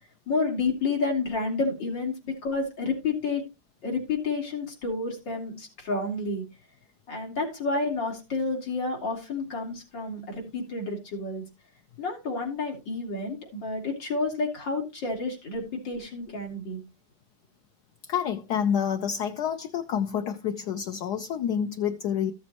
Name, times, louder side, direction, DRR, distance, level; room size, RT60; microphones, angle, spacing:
voice 1, 0.3-3.4 3.8-6.4 7.1-11.4 12.0-16.8, left 3 dB, 85° left, 4.0 m, -30 dB
voice 2, 18.1-22.3, left 8 dB, 70° left, 1.2 m, -28 dB
14.0 x 7.2 x 2.9 m
omnidirectional pair, 2.0 m